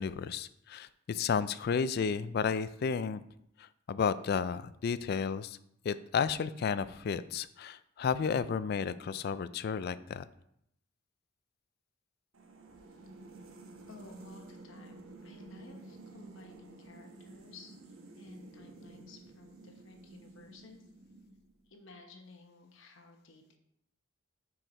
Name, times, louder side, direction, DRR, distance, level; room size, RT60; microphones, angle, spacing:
voice 1, 0.0-3.2 3.6-5.6 5.8-10.3, left 6 dB, 50° left, 15 dB, 0.3 m, -32 dB
sound 1, 12.3-21.7, right 2 dB, 80° right, 0.9 m, -52 dB
voice 2, 13.9-20.9 21.7-23.6, left 3 dB, 65° left, 4 dB, 1.0 m, -55 dB
6.2 x 4.7 x 4.3 m, 0.75 s
head